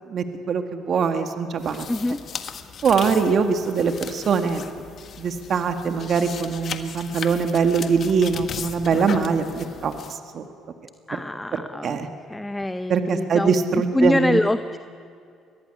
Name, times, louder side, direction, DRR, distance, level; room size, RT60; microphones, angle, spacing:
voice 1, 0.1-1.9 2.8-4.6 5.2-10.4 11.8-12.1 12.9-14.4, right 5 dB, 55° right, 7 dB, 1.7 m, -22 dB
sound 1, 1.6-10.1, left 7 dB, 50° left, 1.6 m, -36 dB
voice 2, 1.9-2.2 11.1-12.0 12.3-14.8, left 1 dB, 10° left, 11 dB, 0.7 m, -24 dB
23.0 x 17.5 x 9.9 m, 2.4 s
supercardioid pair, 80°, 0 cm